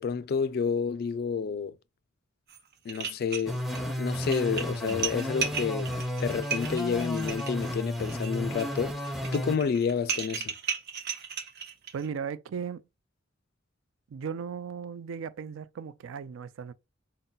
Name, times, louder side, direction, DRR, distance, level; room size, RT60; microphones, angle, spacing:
voice 1, 0.0-1.7 2.9-5.9 6.2-10.5, left 6 dB, 50° left, 0.3 m, -30 dB
sound 1, 2.5-2.6 2.9-3.8 4.1-12.1, right 7 dB, 55° right, 0.9 m, -35 dB
sound 2, 3.5-9.6, equal, ahead, 0.5 m, -33 dB
voice 2, 11.9-12.8 14.1-16.7, right 6 dB, 85° right, 0.4 m, -36 dB
3.9 x 2.1 x 3.7 m
head